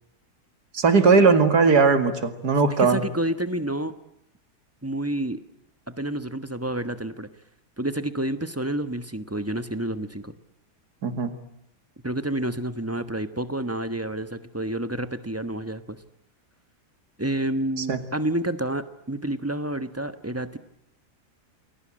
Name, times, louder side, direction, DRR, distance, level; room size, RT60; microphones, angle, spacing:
voice 1, 0.7-3.0 11.0-11.3 17.9-18.0, right 4 dB, 75° right, 9 dB, 2.7 m, -18 dB
voice 2, 2.8-3.9 4.8-5.4 5.9-7.3 7.8-10.3 12.0-16.0 17.2-20.6, right 1 dB, 10° right, 11 dB, 1.1 m, -29 dB
29.5 x 21.5 x 8.9 m, 0.79 s
omnidirectional pair, 1.7 m